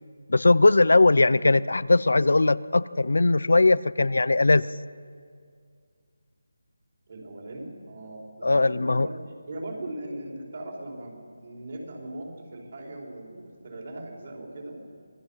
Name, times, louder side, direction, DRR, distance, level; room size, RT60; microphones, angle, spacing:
voice 1, 0.3-4.7 8.4-9.1, left 2 dB, 75° left, 18 dB, 0.6 m, -20 dB
voice 2, 7.1-14.8, right 1 dB, 40° right, 0 dB, 4.8 m, -39 dB
26.5 x 20.5 x 5.7 m, 2.1 s
figure-of-eight pair, 170°, 0 cm